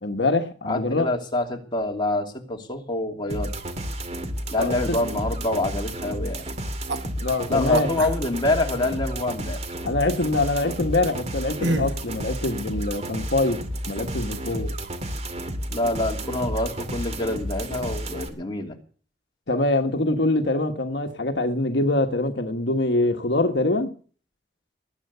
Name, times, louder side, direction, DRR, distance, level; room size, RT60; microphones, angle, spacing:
voice 1, 0.0-1.1 4.6-5.0 7.2-7.9 9.8-13.6 13.9-14.7 19.5-23.9, left 2 dB, 65° left, 5 dB, 1.4 m, -24 dB
voice 2, 0.6-3.5 4.5-6.4 7.5-9.6 15.7-18.7, left 2 dB, 25° left, 2 dB, 2.8 m, -26 dB
sound 1, 3.3-18.3, equal, 35° right, 2.4 m, -32 dB
sound 2, 6.9-7.0 7.7-8.6 11.6-12.0, right 2 dB, 70° right, 1.6 m, -27 dB
20.0 x 9.2 x 6.8 m, 0.42 s
head